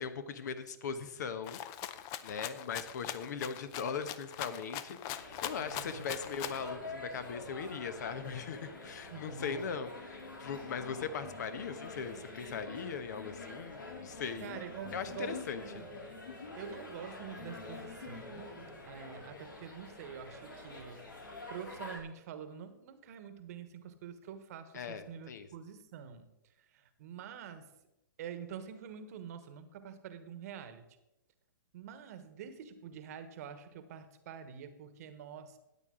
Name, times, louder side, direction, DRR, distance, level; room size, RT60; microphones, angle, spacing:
voice 1, 0.0-1.6 2.2-14.5 14.9-15.8 24.7-25.5, left 6 dB, 60° left, 11 dB, 1.1 m, -40 dB
Rattle (instrument), 1.5-6.7, left 11 dB, 30° left, 0.6 m, -41 dB
sound 1, 5.2-22.0, left 2 dB, 85° left, 3.3 m, -46 dB
voice 2, 5.6-6.1 9.1-9.7 14.4-15.5 16.6-21.1 21.5-26.3 26.6-27.7 28.2-30.8 31.7-35.6, right 7 dB, 50° right, 11 dB, 1.2 m, -46 dB
14.0 x 8.9 x 3.8 m, 0.90 s
hypercardioid pair, 125°, 11 cm